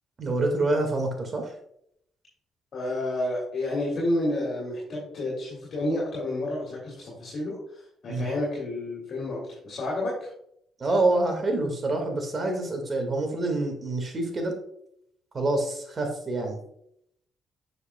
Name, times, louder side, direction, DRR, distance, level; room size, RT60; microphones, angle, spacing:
voice 1, 0.2-1.5 8.1-8.3 10.8-14.5 15.3-16.6, right 2 dB, 35° right, 3 dB, 1.9 m, -26 dB
voice 2, 2.7-10.3, left 1 dB, 55° left, -4 dB, 2.6 m, -30 dB
7.4 x 6.4 x 2.3 m, 0.71 s
cardioid pair, 90°, 0 cm